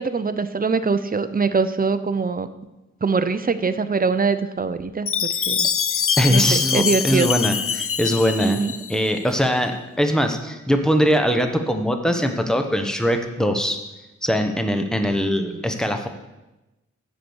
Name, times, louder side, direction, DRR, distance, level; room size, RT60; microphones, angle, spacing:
voice 1, 0.0-2.5 3.0-5.7 6.3-7.3 8.4-8.7 15.4-15.6, right 4 dB, 30° right, 12 dB, 0.5 m, -23 dB
Chime, 5.1-9.2, left 7 dB, 50° left, 0.5 m, -24 dB
voice 2, 6.2-8.6 8.9-13.8 14.2-16.1, equal, ahead, 5 dB, 1.0 m, -21 dB
7.4 x 6.6 x 7.1 m, 1.0 s
wide cardioid pair, 95°, 30 cm